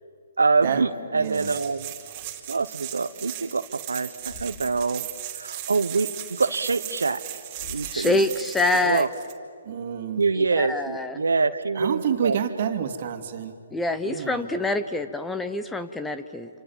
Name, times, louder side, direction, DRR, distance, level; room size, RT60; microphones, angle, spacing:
voice 1, 0.4-1.9 2.5-5.0 5.3-7.2 7.7-8.2 8.8-9.1 10.2-12.4, right 4 dB, 85° right, 11 dB, 1.1 m, -25 dB
voice 2, 1.1-1.5 9.7-10.2 11.8-13.5 14.0-14.4, right 8 dB, 50° right, 8 dB, 2.5 m, -28 dB
sound 1, 1.2-9.3, right 13 dB, 30° right, 2.6 m, -37 dB
Thump thud, 4.2-4.9 7.6-8.1, left 2 dB, 40° left, 3.7 m, -44 dB
voice 3, 7.9-9.1 10.3-11.2 13.7-16.5, left 2 dB, 5° left, 11 dB, 0.9 m, -26 dB
28.0 x 26.5 x 7.3 m, 2.3 s
hypercardioid pair, 145°, 0 cm